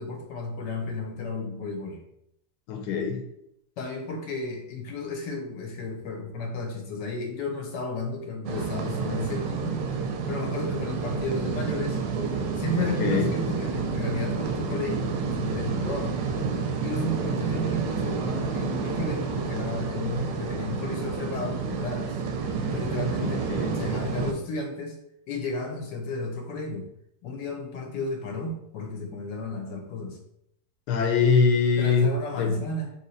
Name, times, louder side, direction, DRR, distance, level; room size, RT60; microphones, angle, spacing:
voice 1, 0.0-2.0 3.8-9.8 10.3-12.0 12.6-16.2 16.8-22.2 22.7-23.5 23.7-25.0 25.3-26.9 27.2-30.2 31.8-32.9, left 2 dB, 85° left, 2 dB, 1.3 m, -33 dB
voice 2, 2.7-3.2 12.8-13.3 23.2-23.8 30.9-32.1 32.4-32.6, left 6 dB, 70° left, 3 dB, 1.1 m, -23 dB
sound 1, 8.4-24.3, right 5 dB, 85° right, 1.2 m, -29 dB
3.3 x 2.8 x 4.0 m, 0.76 s
omnidirectional pair, 1.9 m